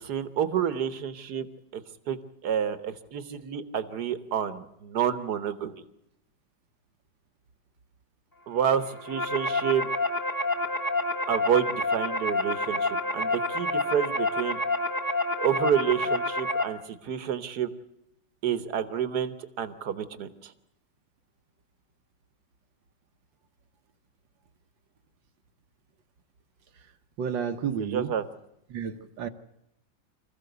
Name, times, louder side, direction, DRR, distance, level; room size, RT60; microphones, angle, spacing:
voice 1, 0.0-1.5 1.7-1.8 2.1-2.2 2.4-5.8 8.5-9.9 11.3-14.6 15.4-17.7 18.4-20.5 27.8-28.2, right 8 dB, 60° right, 12 dB, 1.7 m, -29 dB
sound 1, 8.8-16.6, left 2 dB, 10° left, 1.3 m, -28 dB
voice 2, 27.2-28.1 28.7-29.3, right 7 dB, 75° right, 8 dB, 1.7 m, -31 dB
26.0 x 15.0 x 8.0 m, 0.83 s
omnidirectional pair, 2.1 m